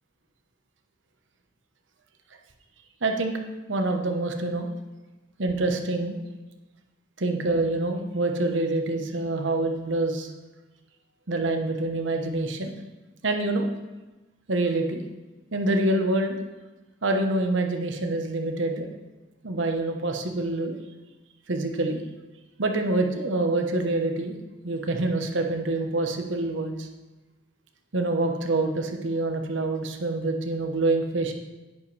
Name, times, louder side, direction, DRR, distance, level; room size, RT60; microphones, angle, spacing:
voice 1, 3.0-3.4 3.7-4.7 5.4-6.2 7.2-10.3 11.3-12.7 13.2-13.7 14.5-15.0 15.5-16.4 17.0-18.9 19.4-20.8 21.5-22.0 22.6-24.4 24.6-26.9 27.9-31.3, right 2 dB, 65° right, 4 dB, 1.0 m, -26 dB
10.5 x 9.6 x 3.3 m, 1.1 s
head